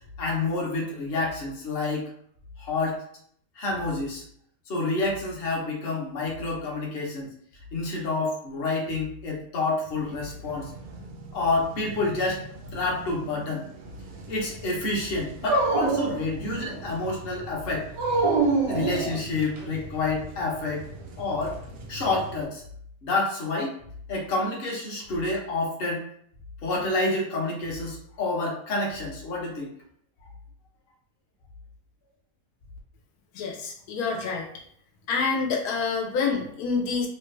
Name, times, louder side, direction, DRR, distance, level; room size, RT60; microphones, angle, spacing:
voice 1, 0.2-2.0 2.6-3.0 3.6-4.2 4.7-7.3 7.7-10.7 11.3-12.4 12.7-13.6 14.3-17.9 18.7-20.8 21.2-21.6 21.9-22.6 23.0-23.8 24.1-26.0 26.6-29.7, left 3 dB, 50° left, -2 dB, 0.9 m, -28 dB
sound 1, 9.8-22.5, right 2 dB, 65° right, 0.6 m, -43 dB
Dog, 15.4-16.9 18.0-19.6, right 3 dB, 80° right, 1.3 m, -25 dB
voice 2, 33.3-34.4 35.1-37.1, left 5 dB, 85° left, 0 dB, 1.1 m, -27 dB
3.2 x 2.2 x 3.1 m, 0.65 s
omnidirectional pair, 1.6 m